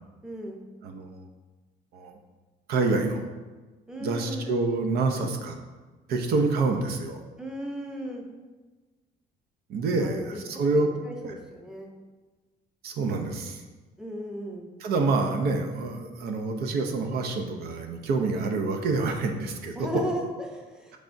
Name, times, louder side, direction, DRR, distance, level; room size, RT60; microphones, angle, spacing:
voice 1, 0.2-0.6 3.9-4.5 7.4-8.2 9.9-10.4 10.7-11.9 14.0-14.7 19.8-21.0, right 1 dB, 5° right, 0 dB, 0.7 m, -35 dB
voice 2, 0.8-1.3 1.9-2.2 2.7-3.2 4.0-5.6 6.1-7.2 9.7-10.9 11.2-11.3 12.8-13.6 14.8-20.1, right 3 dB, 65° right, 4 dB, 0.6 m, -27 dB
6.1 x 3.4 x 2.6 m, 1.3 s
cardioid pair, 110°, 17 cm